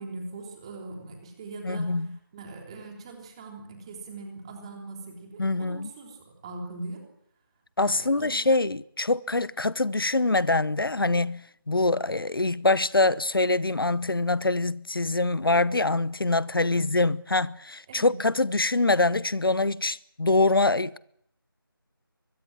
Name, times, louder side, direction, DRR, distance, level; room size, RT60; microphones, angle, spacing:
voice 1, 0.0-7.0 7.8-8.4 16.6-16.8 17.9-18.2, right 2 dB, 15° right, 3.5 m, -41 dB
voice 2, 1.6-2.1 5.4-5.9 7.8-21.0, left 2 dB, 70° left, 0.9 m, -24 dB
24.0 x 22.0 x 7.7 m
figure-of-eight pair, 170°, 12 cm